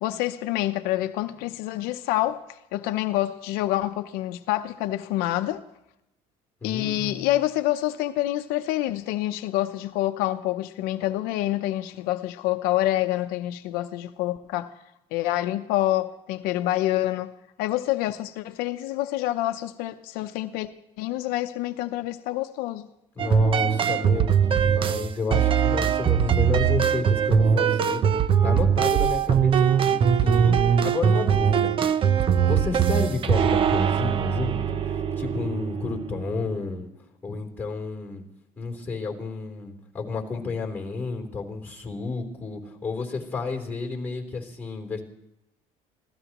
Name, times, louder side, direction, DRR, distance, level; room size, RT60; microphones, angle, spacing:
voice 1, 0.0-5.6 6.6-14.7 15.1-17.3 17.6-20.7 21.0-22.9, left 15 dB, 85° left, 0.8 m, -27 dB
voice 2, 6.6-7.3 23.1-28.0 28.4-31.7 32.4-36.9 37.2-38.2 38.6-45.0, left 4 dB, 15° left, 3.6 m, -31 dB
sound 1, 23.2-36.6, right 7 dB, 35° right, 0.7 m, -21 dB
25.5 x 16.0 x 3.0 m
cardioid pair, 130°, 15 cm